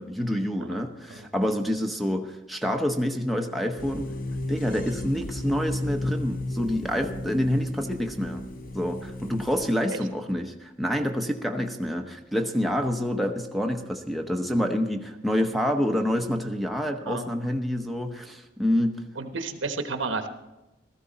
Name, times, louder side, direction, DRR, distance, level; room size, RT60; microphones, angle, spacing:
voice 1, 0.0-4.1 4.5-8.4 8.7-19.0, equal, ahead, 5 dB, 0.8 m, -27 dB
sound 1, 3.8-9.8, left 1 dB, 50° left, 0.8 m, -34 dB
voice 2, 19.2-20.3, right 3 dB, 80° right, 7 dB, 1.1 m, -31 dB
16.5 x 14.0 x 4.0 m, 1.0 s
head